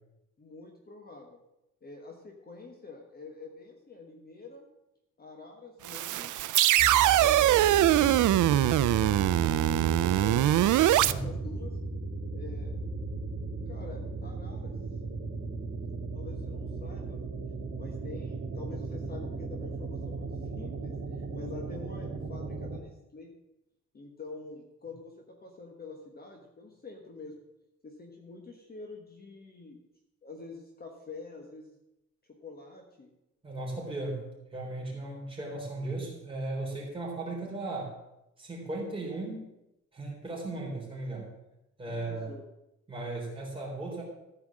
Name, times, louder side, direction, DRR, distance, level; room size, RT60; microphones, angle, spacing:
voice 1, 0.4-1.4 1.8-4.7 5.2-6.3 7.1-10.6 11.0-11.8 12.3-12.7 13.7-14.7 16.1-17.2 17.8-23.3 23.9-27.4 27.8-29.8 30.2-31.8 32.3-33.1 41.9-42.4, left 3 dB, 30° left, 1 dB, 1.3 m, -46 dB
sound 1, 5.8-11.1, right 13 dB, 85° right, 0.5 m, -23 dB
sound 2, 6.8-22.8, right 3 dB, 40° right, 1.7 m, -36 dB
voice 2, 11.0-11.3 33.4-37.9 38.4-39.5 39.9-41.3 41.8-42.3 42.9-44.0, right 2 dB, 20° right, -3 dB, 3.7 m, -36 dB
14.0 x 4.9 x 7.5 m, 0.88 s
wide cardioid pair, 170°, 30 cm